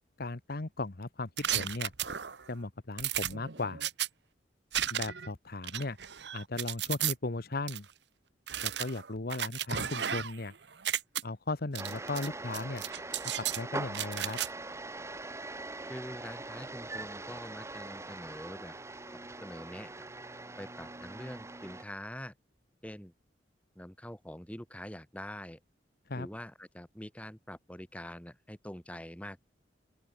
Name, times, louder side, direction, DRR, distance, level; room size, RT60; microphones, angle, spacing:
voice 1, 0.2-1.9 2.5-3.8 4.9-6.0 6.3-7.9 8.6-10.5 11.2-12.8 13.4-14.4 26.1-26.3, left 2 dB, 60° left, 1.2 m, -36 dB
sound 1, 1.4-2.5 3.0-4.1 4.7-5.3 5.6-7.1 7.7-7.8 8.5-10.4 10.7-11.2 11.7-12.3 12.5-13.6 13.9-14.5, right 10 dB, 70° right, 1.2 m, -34 dB
sound 2, 11.8-21.8, right 2 dB, 15° right, 1.0 m, -42 dB
voice 2, 15.9-18.7 19.1-19.9 20.6-22.3 22.8-23.1 23.8-25.6 26.1-29.4, equal, 10° left, 2.5 m, -45 dB
open air
head